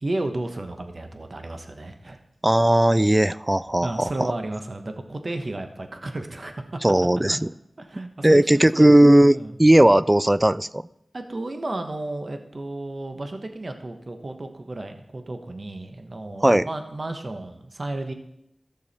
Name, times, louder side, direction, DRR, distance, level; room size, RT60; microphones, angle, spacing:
voice 1, 0.0-2.2 3.8-6.7 7.8-8.9 9.3-9.6 11.1-18.1, right 2 dB, 55° right, 6 dB, 1.1 m, -33 dB
voice 2, 2.4-4.1 6.8-7.5 8.2-10.8 16.4-16.7, right 1 dB, 20° right, 17 dB, 0.3 m, -17 dB
15.0 x 6.4 x 4.2 m, 0.80 s
wide cardioid pair, 45°, 0 cm